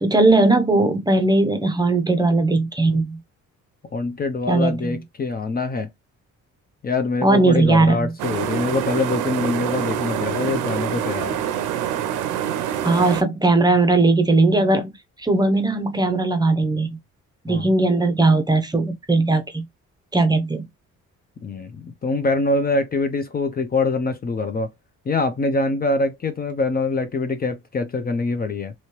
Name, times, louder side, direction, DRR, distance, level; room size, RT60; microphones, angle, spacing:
voice 1, 0.0-3.2 4.5-5.0 7.2-8.1 12.8-14.9 15.2-17.0 17.4-19.6 20.1-20.7, right 2 dB, 15° right, 0.6 m, -18 dB
voice 2, 3.9-5.9 6.8-11.4 17.5-17.7 21.4-24.7 25.1-28.7, left 3 dB, 30° left, 0.5 m, -24 dB
sound 1, 8.2-13.2, right 10 dB, 90° right, 0.6 m, -26 dB
3.1 x 2.8 x 2.9 m
cardioid pair, 90°, 30 cm